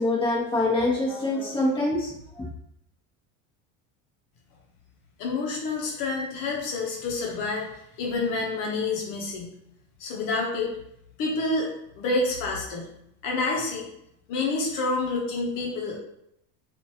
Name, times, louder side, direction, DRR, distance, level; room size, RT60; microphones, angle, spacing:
voice 1, 0.0-2.4, left 2 dB, 15° left, -6 dB, 1.1 m, -25 dB
voice 2, 5.2-7.7 8.0-9.5 10.0-10.7 11.2-11.7 12.0-12.9 13.2-13.9 14.3-16.0, left 3 dB, 65° left, -2 dB, 0.9 m, -28 dB
3.0 x 2.5 x 2.8 m, 0.77 s
supercardioid pair, 115°, 36 cm